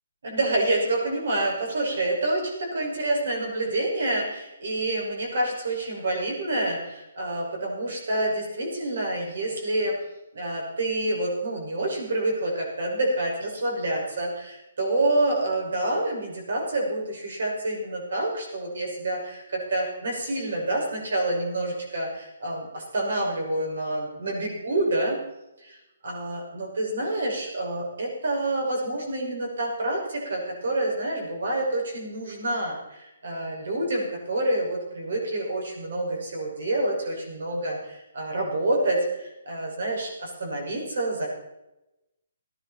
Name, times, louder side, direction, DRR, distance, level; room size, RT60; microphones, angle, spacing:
voice 1, 0.2-9.9 10.3-25.2 25.6-25.8 26.0-41.3, right 1 dB, 60° right, -1 dB, 6.3 m, -28 dB
18.5 x 10.5 x 4.5 m, 0.92 s
hypercardioid pair, 180°, 0 cm